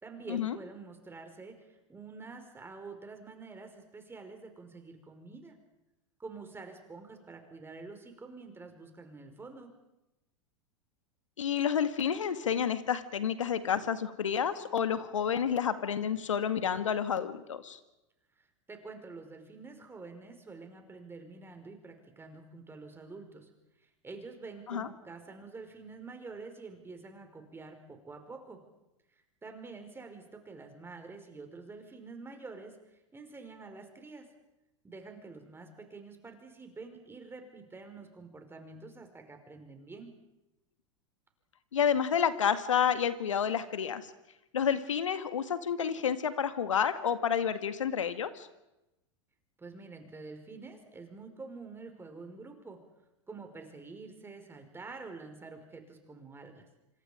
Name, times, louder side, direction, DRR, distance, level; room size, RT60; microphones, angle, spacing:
voice 1, 0.0-5.6 6.2-9.8 18.4-23.5 23.8-28.6 29.1-32.8 33.1-34.3 34.8-40.1 49.6-52.8 53.3-56.7, right 4 dB, 15° right, 5 dB, 5.0 m, -47 dB
voice 2, 11.4-17.8 24.7-24.9 41.7-44.1 44.5-48.5, left 8 dB, 80° left, 11 dB, 2.0 m, -30 dB
27.0 x 26.0 x 5.1 m, 0.94 s
hypercardioid pair, 95°, 16 cm